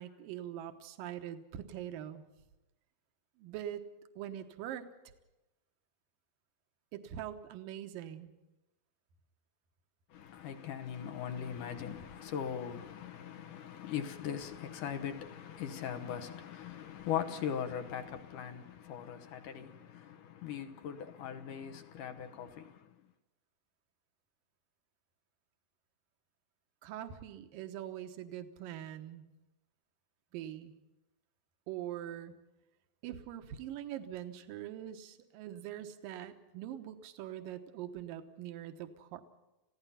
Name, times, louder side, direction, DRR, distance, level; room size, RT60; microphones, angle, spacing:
voice 1, 0.0-2.2 3.4-3.9 4.2-4.9 6.9-8.3 26.8-29.3 30.3-30.7 31.7-32.3 33.0-39.2, right 11 dB, 75° right, 2.8 m, -43 dB
voice 2, 10.1-22.9, left 8 dB, 70° left, 2.6 m, -40 dB
30.0 x 16.0 x 5.7 m
omnidirectional pair, 4.2 m